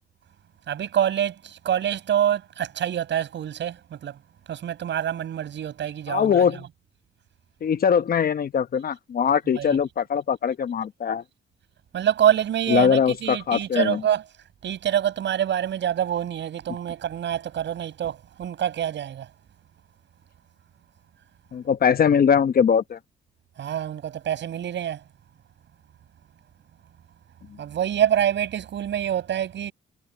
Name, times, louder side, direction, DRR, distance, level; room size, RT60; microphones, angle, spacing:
voice 1, 0.7-4.2 4.5-6.4 9.6-9.8 11.9-14.2 14.6-19.3 23.6-25.0 27.6-29.7, right 10 dB, 65° right, 7.7 m, -26 dB
voice 2, 6.1-6.6 7.6-11.2 12.7-14.0 21.5-23.0, left 7 dB, 50° left, 1.0 m, -21 dB
cardioid pair, 90°, 20 cm